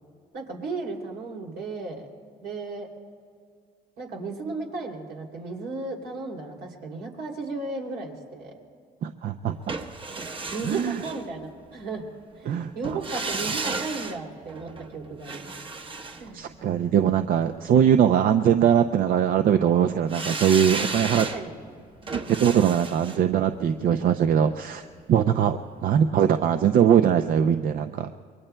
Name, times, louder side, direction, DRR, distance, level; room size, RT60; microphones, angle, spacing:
voice 1, 0.3-2.1 2.4-2.9 4.0-8.5 10.2-10.3 10.5-12.1 12.4-15.5 16.2-16.3 21.3-21.5, right 3 dB, 75° right, 0 dB, 2.9 m, -35 dB
voice 2, 9.0-9.5 10.6-11.0 12.5-13.2 16.3-21.3 22.1-24.8 25.1-28.1, right 9 dB, 60° right, 9 dB, 0.5 m, -21 dB
sound 1, 9.7-11.8 12.8-17.1 20.1-25.1 25.4-25.5, right 3 dB, 30° right, 1.0 m, -34 dB
26.5 x 23.0 x 2.2 m, 2.3 s
cardioid pair, 110°, 17 cm